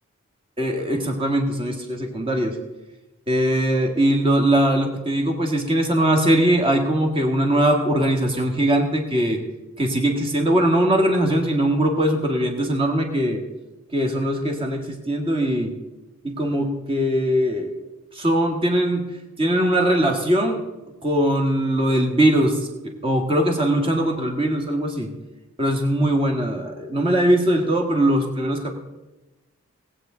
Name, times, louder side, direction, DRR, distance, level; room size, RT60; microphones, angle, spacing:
voice 1, 0.6-2.6 3.3-9.4 9.8-13.4 13.9-15.7 16.2-17.7 18.1-19.0 19.4-20.6 21.0-25.1 25.6-28.7, right 1 dB, 25° right, 3 dB, 1.7 m, -21 dB
19.5 x 8.3 x 3.9 m, 1.0 s
head